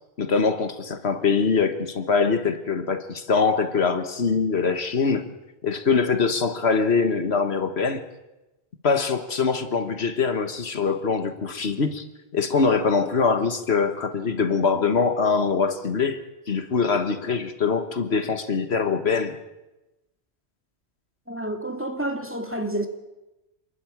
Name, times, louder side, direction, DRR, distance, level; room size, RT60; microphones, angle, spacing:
voice 1, 0.2-5.2 5.6-8.0 8.8-12.0 12.3-16.2 16.5-19.4, left 5 dB, 80° left, 1.6 m, -23 dB
voice 2, 21.3-22.9, right 1 dB, 10° right, 2.2 m, -29 dB
28.0 x 11.5 x 8.8 m
omnidirectional pair, 1.1 m